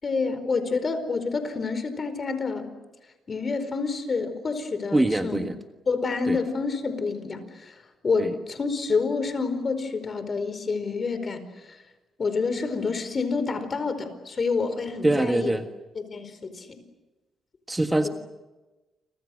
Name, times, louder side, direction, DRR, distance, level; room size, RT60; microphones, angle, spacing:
voice 1, 0.0-2.7 3.3-5.4 5.9-11.8 12.2-15.5 15.9-16.8 18.0-18.1, left 4 dB, 40° left, 10 dB, 4.7 m, -28 dB
voice 2, 4.9-5.5 6.3-6.4 8.2-8.3 15.0-15.6 17.7-18.1, right 2 dB, 15° right, 6 dB, 1.5 m, -23 dB
29.5 x 26.0 x 6.5 m, 1.1 s
cardioid pair, 95°, 0 cm